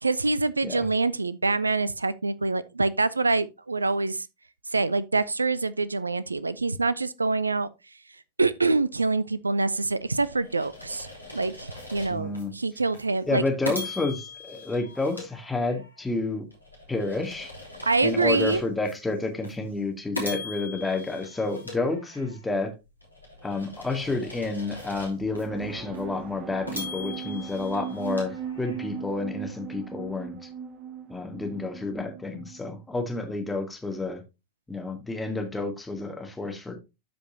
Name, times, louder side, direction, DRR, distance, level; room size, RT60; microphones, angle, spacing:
voice 1, 0.0-4.3 4.7-7.7 8.4-13.4 17.8-18.6, right 3 dB, 80° right, 0.5 m, -25 dB
sound 1, 10.0-12.4 12.9-13.1 13.6-16.0 16.5-18.9 19.4-19.6 20.1-22.5 23.0-25.4 25.9-26.0 26.7-29.0, left 2 dB, 90° left, 3.3 m, -40 dB
voice 2, 12.1-12.5 13.3-16.5 16.9-17.5 18.0-22.7 23.4-30.5 31.1-34.2 34.7-36.8, left 3 dB, 5° left, 2.1 m, -30 dB
sound 2, 25.2-32.8, right 8 dB, 35° right, 1.0 m, -38 dB
13.0 x 5.2 x 2.8 m
figure-of-eight pair, 90°, 0 cm